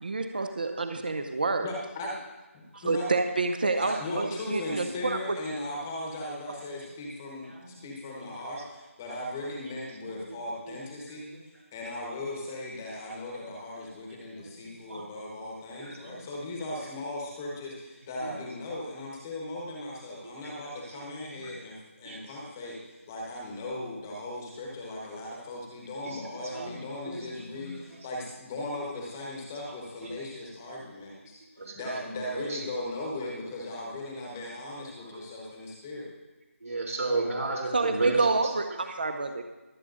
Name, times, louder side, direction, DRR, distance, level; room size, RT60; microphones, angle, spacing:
voice 1, 0.0-1.7 2.8-5.2 37.7-39.4, right 3 dB, 40° right, 7 dB, 0.7 m, -28 dB
voice 2, 1.6-2.2 2.5-3.1 3.8-31.4 31.7-36.1, left 1 dB, 10° left, -2 dB, 1.1 m, -38 dB
voice 3, 10.1-10.4 10.7-10.8 14.9-15.0 15.8-16.1 20.4-20.5 20.9-21.0 21.3-21.5 22.0-22.2 26.0-26.2 26.5-27.7 31.6-32.0 32.3-32.6 35.1-35.2 36.6-38.2, right 3 dB, 75° right, -2 dB, 3.1 m, -33 dB
23.5 x 8.3 x 2.6 m, 1.1 s
figure-of-eight pair, 175°, 8 cm